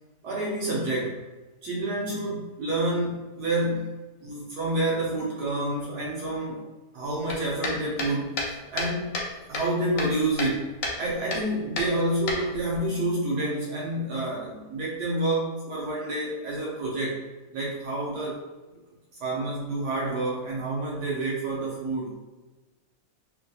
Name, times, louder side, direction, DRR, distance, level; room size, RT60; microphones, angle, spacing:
voice 1, 0.2-1.2 1.6-3.9 4.2-6.6 6.9-8.4 8.7-9.1 9.5-17.2 17.5-18.4 19.2-22.1, right 1 dB, 75° right, -4 dB, 1.2 m, -28 dB
sound 1, 7.3-9.3 9.5-10.6 10.8-11.0 11.3-11.5 11.8-12.8, left 2 dB, 65° left, 0.9 m, -31 dB
3.2 x 2.7 x 2.2 m, 1.2 s
omnidirectional pair, 1.8 m